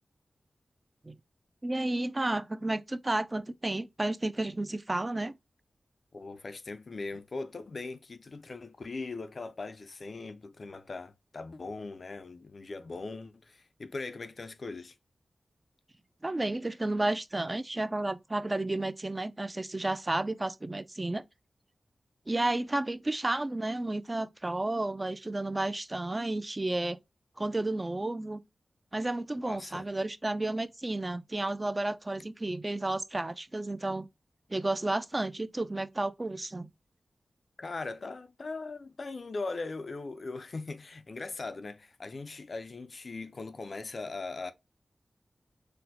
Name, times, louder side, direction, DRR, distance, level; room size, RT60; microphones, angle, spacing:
voice 1, 1.6-5.4 16.2-21.2 22.3-27.0 27.4-28.4 28.9-34.1 34.5-36.7, right 2 dB, 30° right, 0.3 m, -32 dB
voice 2, 6.1-15.0 29.4-29.9 37.6-44.5, left 3 dB, 60° left, 0.3 m, -40 dB
4.2 x 2.0 x 2.6 m
cardioid pair, 50°, 0 cm